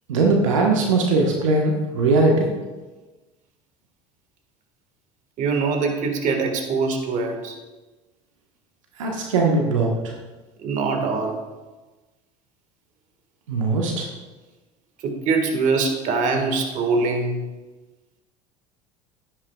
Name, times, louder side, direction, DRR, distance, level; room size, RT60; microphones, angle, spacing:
voice 1, 0.1-2.5 9.0-10.1 13.5-14.1, right 3 dB, 85° right, 0 dB, 1.3 m, -20 dB
voice 2, 5.4-7.5 10.6-11.4 15.0-17.5, right 4 dB, 50° right, 5 dB, 1.8 m, -23 dB
11.0 x 11.0 x 2.4 m, 1.2 s
hypercardioid pair, 80°, 16 cm